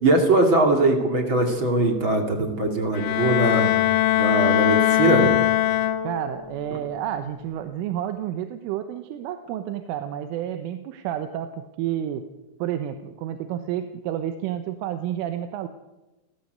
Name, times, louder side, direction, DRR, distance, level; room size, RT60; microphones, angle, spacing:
voice 1, 0.0-3.7 4.2-5.3, right 2 dB, 35° right, 4 dB, 2.3 m, -21 dB
Bowed string instrument, 2.9-6.4, left 13 dB, 70° left, 3.6 m, -21 dB
voice 2, 6.0-12.3 12.6-15.7, right 10 dB, 80° right, 8 dB, 3.6 m, -30 dB
29.5 x 18.0 x 7.9 m, 1.1 s
omnidirectional pair, 5.6 m